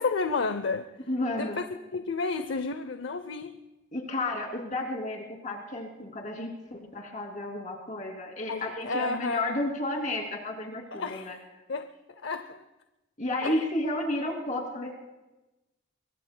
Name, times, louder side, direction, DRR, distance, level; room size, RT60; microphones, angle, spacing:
voice 1, 0.0-0.9 1.3-1.7 1.9-3.6 8.5-9.6 10.9-11.3 11.7-12.6 13.4-13.6, left 4 dB, 70° left, 0.6 m, -31 dB
voice 2, 1.1-1.6 3.9-11.4 13.2-14.9, left 1 dB, 40° left, 2.7 m, -32 dB
24.5 x 23.0 x 2.2 m
head